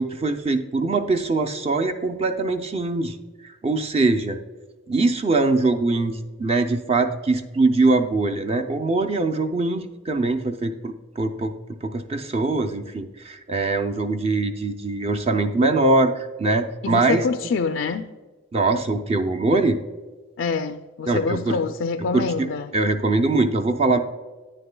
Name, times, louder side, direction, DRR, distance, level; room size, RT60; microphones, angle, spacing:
voice 1, 0.0-3.2 3.4-4.4 4.9-11.5 11.8-17.2 18.5-19.8 21.1-21.6 22.1-22.5 22.7-24.0, right 3 dB, 30° right, 0.4 m, -22 dB
voice 2, 16.8-18.1 20.4-22.7, left 4 dB, 70° left, 0.4 m, -26 dB
9.8 x 9.3 x 2.2 m
head